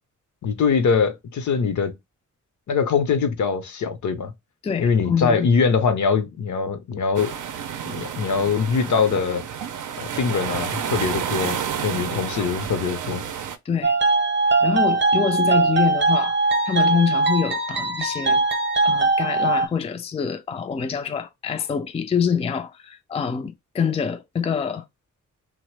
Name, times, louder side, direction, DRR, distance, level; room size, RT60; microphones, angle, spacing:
voice 1, 0.4-2.0 2.7-4.3 4.8-7.3 7.9-9.4 10.0-13.2, left 5 dB, 65° left, 0.7 m, -22 dB
voice 2, 4.6-5.5 12.1-12.2 13.7-14.0 14.6-18.4 18.8-24.8, left 6 dB, 20° left, 0.3 m, -25 dB
sound 1, 7.2-13.6, right 8 dB, 75° right, 0.5 m, -30 dB
sound 2, 13.8-19.7, right 3 dB, 35° right, 0.7 m, -20 dB
2.9 x 2.0 x 3.2 m
cardioid pair, 80°, 31 cm